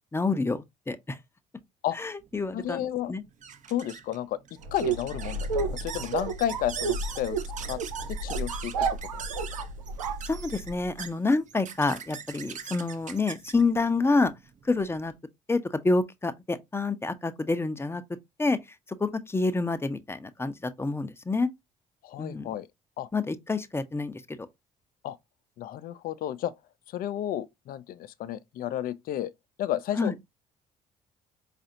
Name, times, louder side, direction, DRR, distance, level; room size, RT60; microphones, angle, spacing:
voice 1, 0.1-1.2 1.9-3.2 10.3-14.3 14.6-15.1 15.5-18.0 18.4-18.6 19.0-21.5 22.2-22.5 23.1-24.2 29.9-30.1, left 3 dB, 15° left, 0.6 m, -28 dB
sound 1, 2.3-15.2, right 7 dB, 45° right, 0.7 m, -43 dB
voice 2, 2.5-3.1 3.7-4.4 4.7-5.5 5.8-7.4 7.6-7.8 8.1-8.7 9.1-9.3 22.0-22.7 23.0-23.1 25.0-25.2 25.6-26.5 26.9-29.3 29.6-30.1, left 11 dB, 55° left, 0.5 m, -32 dB
sound 2, 4.6-10.9, right 4 dB, 90° right, 0.5 m, -31 dB
4.8 x 2.5 x 2.7 m
hypercardioid pair, 50°, 18 cm